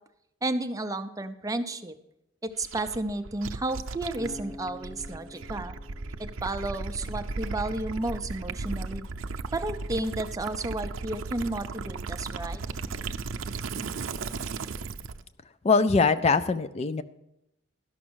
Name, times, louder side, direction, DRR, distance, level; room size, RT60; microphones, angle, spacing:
voice 1, 0.4-1.9 2.4-5.8 6.2-9.1 9.5-12.6, right 2 dB, 15° right, 8 dB, 0.5 m, -32 dB
Gurgling / Liquid, 2.6-15.2, right 4 dB, 85° right, 0.6 m, -36 dB
Acoustic guitar, 4.2-7.4, left 2 dB, 15° left, 1.6 m, -47 dB
voice 2, 15.6-17.0, left 4 dB, 30° left, 13 dB, 0.4 m, -22 dB
12.0 x 6.0 x 6.2 m, 0.83 s
head